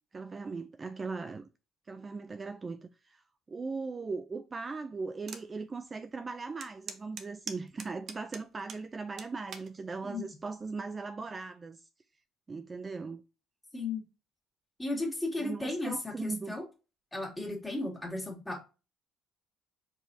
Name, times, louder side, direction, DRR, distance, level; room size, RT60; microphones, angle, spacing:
voice 1, 0.1-1.5 1.9-11.8 12.5-13.2 15.4-16.5, right 4 dB, 30° right, 0.3 m, -39 dB
sound 1, 5.3-5.5 5.9-6.0 6.6-8.8 9.2-9.7 10.4-10.7, right 6 dB, 50° right, 0.8 m, -42 dB
voice 2, 14.8-16.6 17.1-18.7, left 2 dB, 10° left, 1.9 m, -35 dB
4.8 x 4.0 x 2.6 m
cardioid pair, 95°, 0 cm